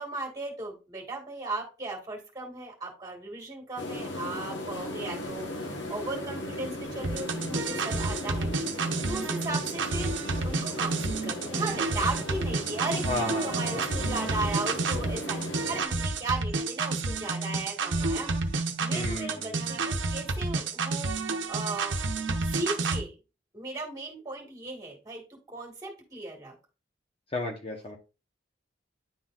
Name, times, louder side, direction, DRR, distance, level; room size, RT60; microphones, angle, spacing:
voice 1, 0.0-8.5 9.1-22.0 22.5-23.1 23.5-26.6, right 3 dB, 20° right, 1 dB, 2.1 m, -37 dB
sound 1, 3.8-15.8, left 1 dB, 70° left, 1.2 m, -37 dB
sound 2, 7.0-23.0, right 3 dB, 70° right, 0.8 m, -30 dB
voice 2, 13.0-13.9 18.9-19.7 27.3-28.0, left 2 dB, 30° left, 1 dB, 0.9 m, -34 dB
10.5 x 3.9 x 2.4 m, 0.31 s
head